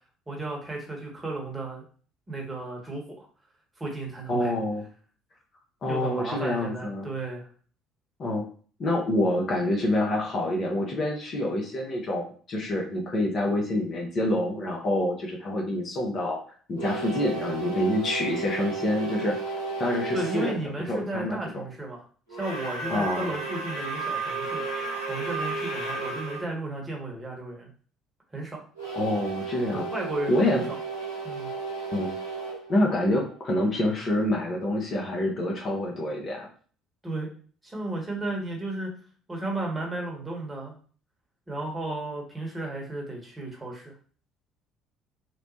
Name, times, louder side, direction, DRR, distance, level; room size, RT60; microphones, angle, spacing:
voice 1, 0.3-1.8 2.3-3.3 3.8-4.5 5.9-7.5 20.1-22.1 22.3-24.6 25.1-27.7 28.3-28.6 29.7-30.8 31.2-31.5 37.0-37.3 37.6-38.9 39.3-40.7 41.5-43.9, right 2 dB, 20° right, -1 dB, 1.0 m, -34 dB
voice 2, 4.3-4.8 5.8-7.1 8.2-8.4 8.8-16.4 16.7-19.5 19.8-21.6 22.9-23.3 28.9-29.8 30.3-30.6 31.9-32.1 32.7-36.5, left 1 dB, 40° left, 0 dB, 0.6 m, -27 dB
sound 1, 16.7-20.6 22.3-26.4 28.8-33.6, right 4 dB, 85° left, 0.7 m, -33 dB
2.9 x 2.0 x 2.6 m, 0.43 s
figure-of-eight pair, 55°, 0 cm